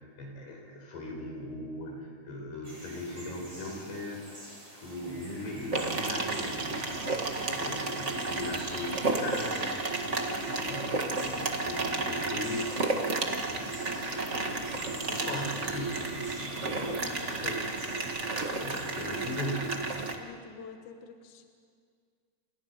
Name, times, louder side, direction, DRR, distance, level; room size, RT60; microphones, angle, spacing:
voice 1, 0.0-4.3 4.7-10.1 10.4-18.3 18.6-19.8, left 1 dB, 75° left, 0 dB, 7.3 m, -40 dB
sound 1, 2.6-19.5, right 1 dB, 20° right, 6.5 m, -48 dB
sound 2, 5.7-20.1, right 3 dB, 80° right, 0.6 m, -32 dB
voice 2, 18.6-18.9 20.0-21.4, left 5 dB, 60° left, 5 dB, 2.4 m, -48 dB
29.5 x 28.5 x 5.7 m, 2.1 s
omnidirectional pair, 4.6 m